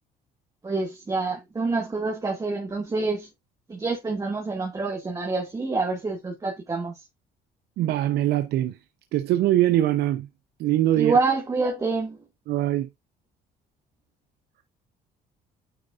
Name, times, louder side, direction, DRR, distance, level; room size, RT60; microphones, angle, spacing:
voice 1, 0.6-3.3 3.7-7.0 11.0-12.2, right 3 dB, 20° right, 2.1 m, -27 dB
voice 2, 7.8-8.8 9.1-10.3 10.6-11.2 12.5-12.9, right 13 dB, 75° right, 0.8 m, -22 dB
9.3 x 6.4 x 2.5 m
cardioid pair, 110°, 17 cm